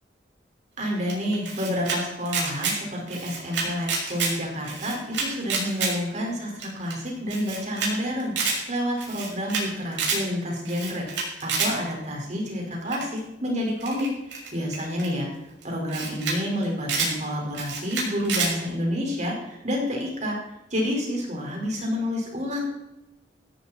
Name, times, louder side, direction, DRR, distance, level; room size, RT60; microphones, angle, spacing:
voice 1, 0.8-15.3 15.6-20.4 20.7-22.6, equal, 40° right, -1 dB, 5.4 m, -29 dB
Camera, 1.1-2.0 2.3-2.8 3.1-4.3 4.6-5.9 6.3-6.4 6.6-6.7 6.9-7.0 7.3-7.9 8.2-8.6 9.0-9.6 9.9-10.2 10.7-11.7 12.9-13.2 13.8-15.1 15.6-15.7 15.9-16.4 16.6-17.1 17.5-18.5, right 4 dB, 85° right, 6.6 m, -28 dB
18.0 x 13.5 x 4.5 m, 0.95 s
head